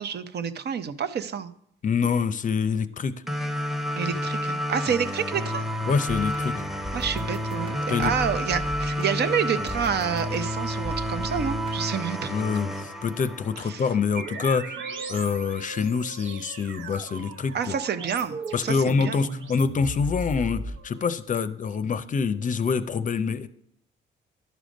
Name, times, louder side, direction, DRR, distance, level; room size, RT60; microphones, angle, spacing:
voice 1, 0.0-1.5 3.9-5.6 6.9-12.3 13.7-13.8 17.5-19.2, right 7 dB, 55° right, 11 dB, 0.7 m, -28 dB
voice 2, 1.8-3.1 5.9-6.6 7.9-8.1 12.3-14.8 15.1-17.7 18.5-23.5, left 5 dB, 40° left, 13 dB, 0.5 m, -26 dB
sound 1, 3.3-14.2, equal, ahead, 0.8 m, -30 dB
sound 2, 6.1-11.8, right 1 dB, 25° right, 1.1 m, -38 dB
sound 3, 14.2-21.3, right 2 dB, 75° right, 1.1 m, -37 dB
11.0 x 5.1 x 5.1 m, 0.72 s
cardioid pair, 90°, 20 cm